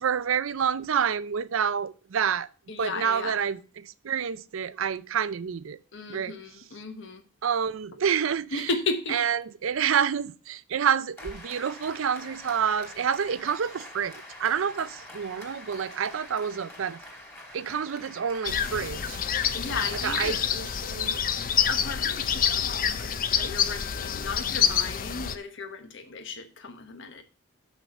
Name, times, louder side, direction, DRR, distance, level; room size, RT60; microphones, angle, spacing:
voice 1, 0.0-2.5 2.8-5.8 6.1-6.3 7.4-8.7 9.1-17.0 17.5-19.2 20.0-21.2, right 7 dB, 75° right, 0.5 m, -28 dB
voice 2, 2.7-3.4 5.9-7.2 8.5-9.2 19.5-20.4 21.7-27.2, left 3 dB, 65° left, 1.1 m, -35 dB
Applause, 11.2-21.2, left 1 dB, 10° left, 2.2 m, -46 dB
sound 1, 18.4-25.3, left 8 dB, 45° left, 0.5 m, -27 dB
6.4 x 6.3 x 5.2 m
head